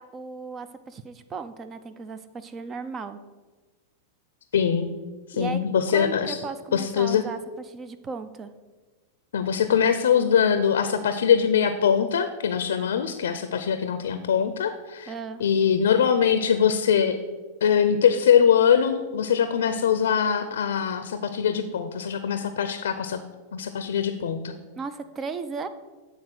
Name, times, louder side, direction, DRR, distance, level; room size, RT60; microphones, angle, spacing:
voice 1, 0.0-3.2 5.3-5.6 5.9-8.5 15.1-15.4 24.8-25.7, right 4 dB, 25° right, 11 dB, 0.6 m, -36 dB
voice 2, 4.5-4.9 5.3-6.4 6.7-7.3 9.3-15.1 15.4-17.2 17.6-23.2 23.5-24.5, left 7 dB, 80° left, 10 dB, 0.5 m, -22 dB
8.7 x 4.0 x 6.2 m, 1.3 s
hypercardioid pair, 110°, 0 cm